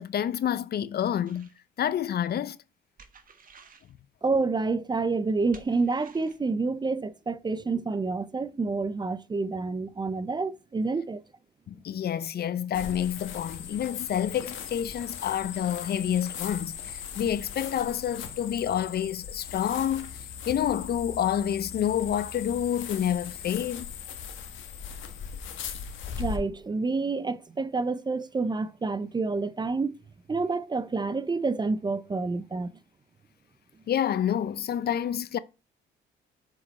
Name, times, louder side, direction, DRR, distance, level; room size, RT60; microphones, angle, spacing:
voice 1, 0.0-1.5 1.8-2.6 11.7-16.7 17.2-20.1 20.5-23.9 33.9-35.4, left 10 dB, 55° left, 0.5 m, -28 dB
sound 1, 1.3-1.6 3.0-3.9 5.5-6.4, right 5 dB, 45° right, 1.4 m, -53 dB
voice 2, 4.2-11.2 26.2-30.0 30.3-32.8, right 3 dB, 20° right, 0.5 m, -28 dB
sound 2, 12.7-26.4, left 7 dB, 75° left, 1.3 m, -39 dB
7.3 x 5.0 x 4.2 m
cardioid pair, 90°, 20 cm